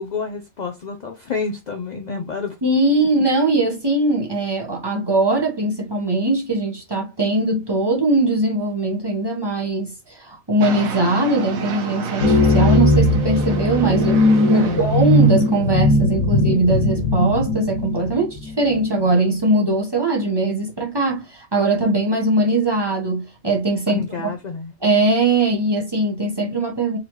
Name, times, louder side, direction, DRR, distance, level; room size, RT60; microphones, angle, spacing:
voice 1, 0.0-2.6 14.5-14.9 23.9-24.7, left 4 dB, 70° left, 0.4 m, -28 dB
voice 2, 2.6-24.0 24.8-27.0, right 2 dB, 20° right, 0.9 m, -20 dB
sound 1, 10.6-15.6, right 5 dB, 85° right, 1.2 m, -29 dB
sound 2, 12.2-18.8, left 1 dB, 90° left, 1.3 m, -18 dB
3.8 x 3.1 x 3.0 m
omnidirectional pair, 1.4 m